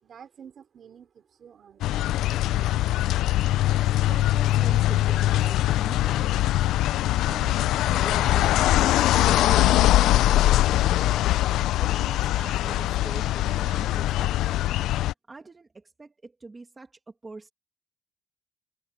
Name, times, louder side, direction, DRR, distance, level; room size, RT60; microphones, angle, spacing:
voice 1, 0.0-2.1, right 8 dB, 40° right, 4.1 m, -49 dB
sound 1, 1.8-15.1, left 14 dB, 85° left, 0.4 m, -22 dB
voice 2, 4.1-6.3 7.1-11.2 11.8-14.6 15.3-17.5, right 3 dB, 15° right, 2.1 m, -43 dB
cardioid pair, 180°, 0 cm